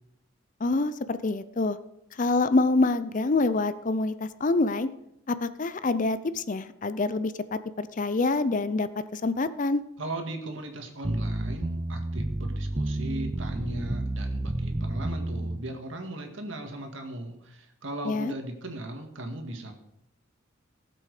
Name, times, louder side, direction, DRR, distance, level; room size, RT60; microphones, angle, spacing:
voice 1, 0.6-1.8 2.2-4.9 5.3-9.8 18.0-18.3, left 3 dB, 40° left, 13 dB, 0.5 m, -26 dB
voice 2, 10.0-19.7, right 1 dB, 70° right, 4 dB, 2.1 m, -37 dB
sound 1, 11.0-15.6, right 1 dB, 15° right, 0.5 m, -30 dB
18.0 x 7.8 x 4.9 m, 0.81 s
head